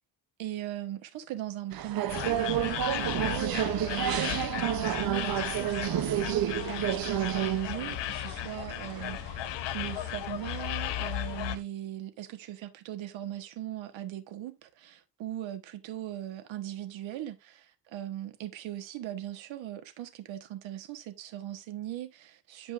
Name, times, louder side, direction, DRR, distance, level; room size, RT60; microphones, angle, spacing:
voice 1, 0.4-22.7, right 13 dB, 85° right, 1.2 m, -39 dB
sound 1, 1.7-11.6, right 11 dB, 50° right, 0.7 m, -31 dB
sound 2, 2.1-11.6, left 14 dB, 70° left, 0.7 m, -35 dB
10.0 x 5.4 x 2.4 m
cardioid pair, 125°, 45 cm